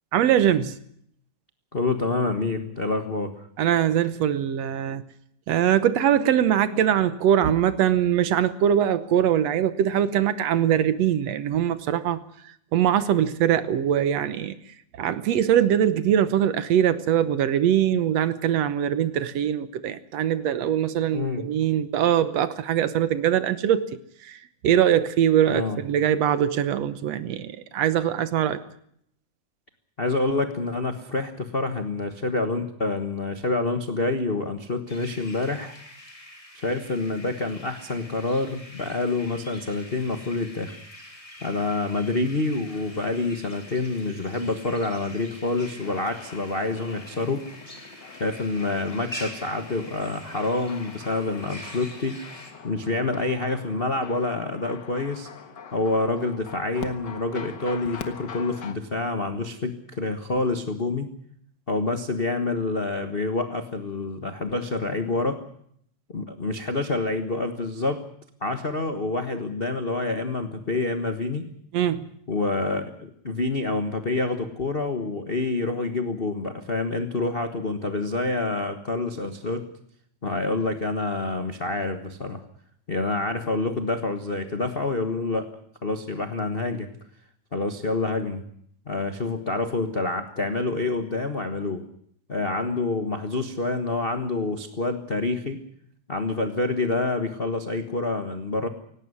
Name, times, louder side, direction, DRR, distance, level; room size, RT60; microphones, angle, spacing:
voice 1, 0.1-0.8 3.6-5.0 5.5-12.2 12.7-14.6 15.0-23.9 24.2-24.4 24.6-28.6 71.7-72.1, right 10 dB, 65° right, 14 dB, 2.0 m, -22 dB
voice 2, 1.7-3.5 21.1-21.4 25.5-25.8 30.0-35.7 36.5-40.8 41.4-47.4 48.2-52.2 52.6-55.3 55.7-61.1 61.7-65.4 66.1-68.1 68.4-71.5 72.3-79.7 80.2-82.4 82.9-85.5 85.8-86.9 87.5-88.4 88.9-91.8 92.3-95.6 96.1-98.7, left 3 dB, 75° left, 7 dB, 0.5 m, -27 dB
sound 1, 34.9-52.5, left 1 dB, 10° left, 3.1 m, -44 dB
sound 2, 45.8-58.7, left 6 dB, 45° left, 1.7 m, -43 dB
18.0 x 17.5 x 9.8 m, 0.68 s
omnidirectional pair, 3.4 m